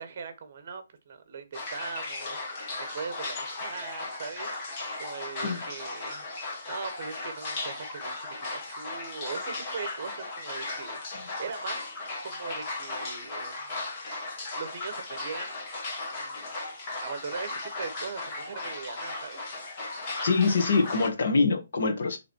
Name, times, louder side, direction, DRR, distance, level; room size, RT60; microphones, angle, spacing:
voice 1, 0.0-6.2 6.6-11.9 12.2-13.8 14.5-15.6 16.1-16.5 16.9-20.1 20.5-20.6, right 5 dB, 40° right, 1.3 m, -40 dB
sound 1, 1.5-21.1, left 2 dB, 25° left, 1.8 m, -36 dB
voice 2, 20.2-22.2, left 4 dB, 60° left, 1.8 m, -24 dB
7.0 x 3.8 x 4.6 m
hypercardioid pair, 170°, 0 cm